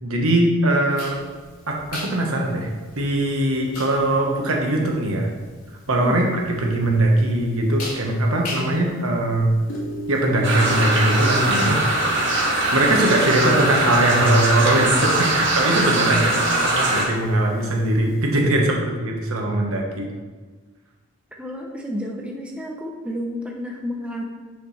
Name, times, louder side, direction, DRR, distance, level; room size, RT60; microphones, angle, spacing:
voice 1, 0.0-1.2 1.7-2.7 2.9-5.3 5.9-6.3 6.6-9.5 10.1-11.8 12.7-20.1, right 1 dB, 70° right, 0 dB, 1.3 m, -21 dB
sound 1, 0.9-18.6, equal, 85° left, 2.2 m, -38 dB
sound 2, 10.4-17.0, right 2 dB, 55° right, 1.7 m, -21 dB
voice 2, 16.0-16.6 21.4-24.2, left 1 dB, 5° right, -1 dB, 0.7 m, -31 dB
9.6 x 5.2 x 3.3 m, 1.4 s
head